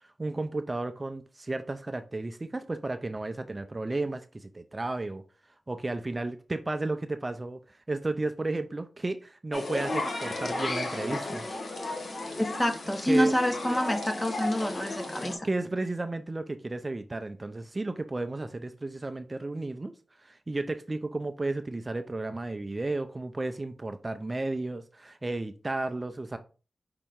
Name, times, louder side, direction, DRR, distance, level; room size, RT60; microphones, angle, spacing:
voice 1, 0.0-5.2 5.7-11.5 13.1-13.4 15.4-19.9 20.2-26.4, right 2 dB, 30° right, 0.4 m, -33 dB
sound 1, 9.5-15.4, left 2 dB, 65° left, 1.0 m, -34 dB
voice 2, 12.4-15.5, equal, 15° left, 0.8 m, -27 dB
5.2 x 2.9 x 3.5 m
wide cardioid pair, 75°, 0 cm